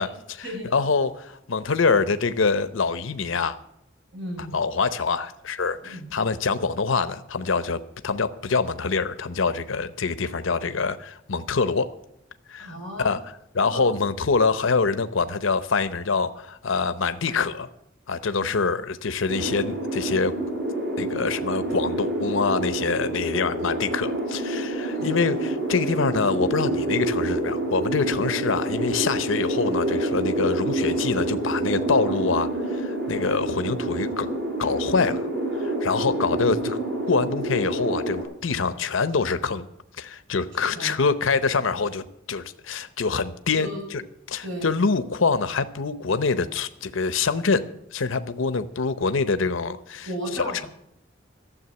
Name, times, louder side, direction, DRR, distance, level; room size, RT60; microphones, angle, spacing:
voice 1, 0.0-0.5 0.7-3.6 4.5-11.9 12.5-13.2 13.5-17.7 18.1-20.3 21.0-34.3 34.6-35.3 35.6-36.8 37.1-39.7 40.0-44.0 44.3-47.6 47.9-50.1 50.4-50.7, left 4 dB, 75° left, 12 dB, 0.8 m, -25 dB
voice 2, 4.1-4.5 5.8-6.0 12.6-13.1 13.6-13.8 18.4-18.6 24.8-25.1 35.9-36.2 40.6-40.9 43.5-43.8 44.4-44.7 50.0-50.7, equal, 75° right, -1 dB, 6.9 m, -35 dB
sound 1, 19.3-38.2, right 1 dB, 55° right, 4.5 m, -27 dB
12.5 x 7.4 x 9.9 m, 0.77 s
head